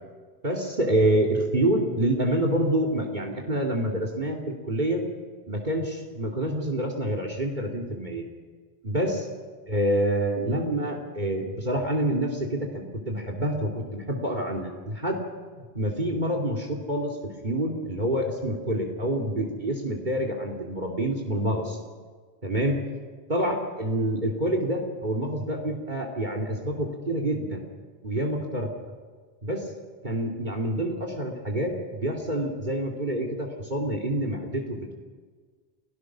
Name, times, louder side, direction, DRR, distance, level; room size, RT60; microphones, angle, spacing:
voice 1, 0.4-5.0 5.5-8.2 8.8-9.2 9.7-15.2 15.7-17.2 17.4-21.8 22.4-22.8 23.3-27.6 28.0-28.7 29.4-29.7 30.0-35.0, right 1 dB, 45° right, 2 dB, 2.7 m, -27 dB
29.5 x 17.5 x 6.2 m, 1.5 s
omnidirectional pair, 1.1 m